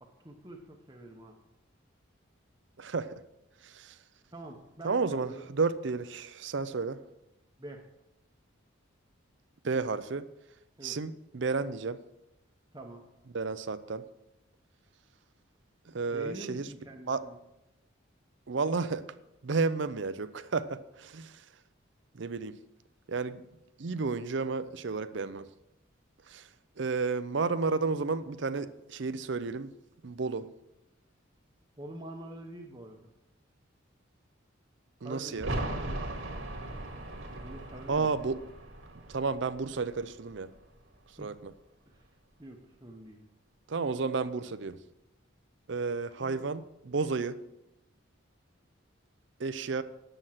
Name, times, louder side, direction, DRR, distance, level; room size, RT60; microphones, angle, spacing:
voice 1, 0.0-1.4 4.3-5.4 7.6-7.8 10.8-11.0 12.7-13.1 16.1-17.4 31.8-33.1 35.0-35.5 37.4-38.1 41.2-41.3 41.9-42.1 42.4-43.2, right 1 dB, 20° right, 1 dB, 0.9 m, -45 dB
voice 2, 2.8-3.2 3.6-4.0 4.8-7.0 9.6-10.3 10.8-12.0 13.3-14.0 15.9-16.7 17.1-17.2 18.5-19.1 19.4-21.3 22.1-22.6 23.1-23.4 23.8-25.5 26.3-26.5 26.8-29.7 30.0-30.5 35.0-35.5 37.9-38.4 39.1-40.5 41.2-41.5 43.7-44.8 45.7-47.4 49.4-49.8, right 4 dB, 65° right, 13 dB, 0.5 m, -32 dB
sound 1, 35.3-40.9 41.2-41.3, right 1 dB, 85° right, 1.8 m, -39 dB
9.8 x 7.8 x 5.8 m, 0.91 s
head